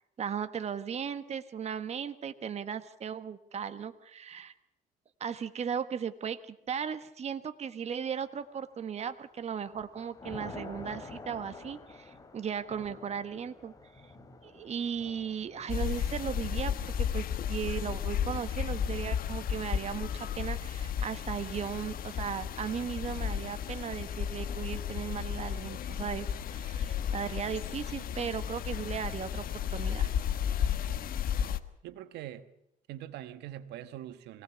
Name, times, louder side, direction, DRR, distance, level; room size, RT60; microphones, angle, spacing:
voice 1, 0.2-4.5 5.2-13.7 14.4-29.4 29.7-30.1, right 7 dB, 40° right, 1.5 m, -36 dB
Thunder / Rain, 8.4-8.9 9.3-20.5, left 3 dB, 20° left, 2.9 m, -50 dB
sound 1, 15.7-31.6, left 9 dB, 60° left, 1.3 m, -33 dB
voice 2, 31.8-32.5 32.9-34.4, right 12 dB, 80° right, 1.3 m, -43 dB
24.0 x 18.0 x 7.1 m
cardioid pair, 110°, 17 cm